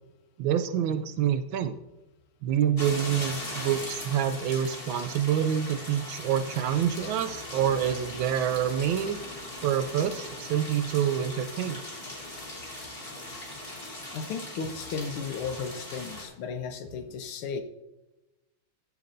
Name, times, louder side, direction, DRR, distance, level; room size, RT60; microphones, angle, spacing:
voice 1, 0.4-1.7 2.4-9.2 9.6-11.8, right 9 dB, 75° right, 10 dB, 1.2 m, -27 dB
sound 1, 2.8-16.3, left 1 dB, 15° left, 1.7 m, -39 dB
voice 2, 14.1-17.6, left 5 dB, 85° left, 7 dB, 1.7 m, -35 dB
14.0 x 7.6 x 2.6 m, 1.0 s
omnidirectional pair, 2.4 m